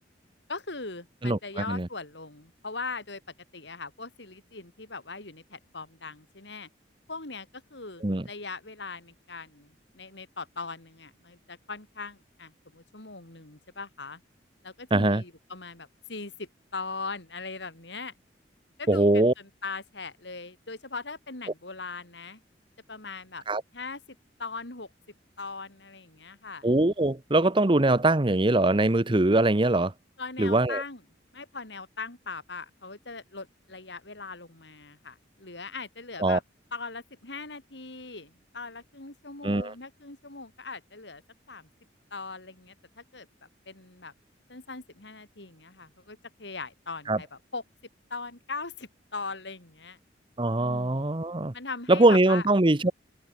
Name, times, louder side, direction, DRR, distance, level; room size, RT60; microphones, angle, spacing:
voice 1, 0.5-3.2 3.5-6.7 7.1-14.2 14.6-18.1 18.8-22.4 22.9-23.4 23.7-24.0 24.4-24.9 25.4-26.6 30.2-31.0 31.3-36.4 36.7-41.2 41.5-41.7 42.1-43.3 43.7-44.1 44.5-47.3 47.5-47.6 48.1-50.0 50.6-51.2 51.5-52.5, left 4 dB, 70° left, 3.7 m, -40 dB
voice 2, 1.2-1.9 8.0-8.3 14.9-15.2 18.9-19.3 23.5-23.6 26.6-29.9 30.4-30.8 36.2-36.4 39.4-39.7 47.1-47.2 50.4-51.5 51.9-52.9, right 2 dB, 25° right, 0.9 m, -22 dB
open air
head